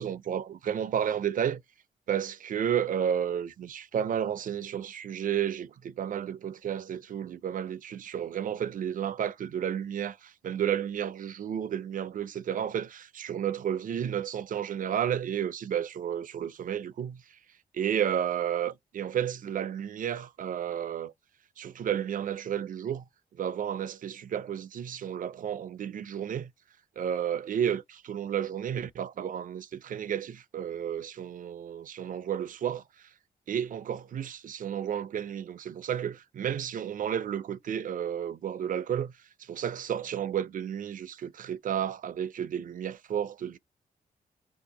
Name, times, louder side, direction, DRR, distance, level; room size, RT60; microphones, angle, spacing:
voice 1, 0.0-1.6 2.1-17.2 17.7-21.1 21.6-23.0 23.3-26.5 27.0-33.1 33.5-39.1 39.4-43.6, right 9 dB, 55° right, 0.4 m, -32 dB
2.7 x 2.2 x 3.9 m
cardioid pair, 70°, 16 cm